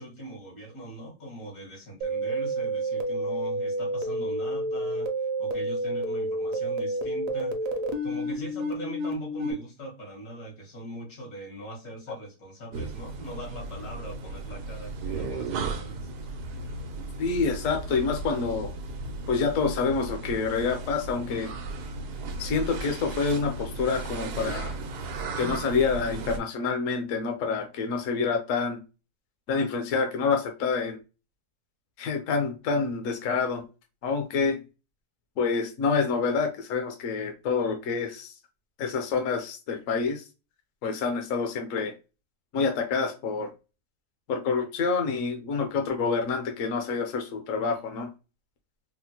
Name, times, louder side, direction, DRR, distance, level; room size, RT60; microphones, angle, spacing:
voice 1, 0.0-7.7 8.0-16.1, right 1 dB, 80° left, -1 dB, 2.2 m, -41 dB
sound 1, 2.0-9.5, right 1 dB, 65° right, 1.0 m, -30 dB
sound 2, 12.7-26.4, right 3 dB, 85° right, 1.2 m, -35 dB
voice 2, 17.2-18.7 19.3-21.5 22.4-24.8 25.4-28.8 29.5-31.0 32.0-33.6 34.0-34.6 35.4-38.3 38.8-40.2 40.8-41.9 42.5-43.5 44.3-48.1, left 5 dB, 65° left, 4 dB, 1.0 m, -27 dB
4.3 x 2.1 x 2.8 m, 0.29 s
omnidirectional pair, 1.6 m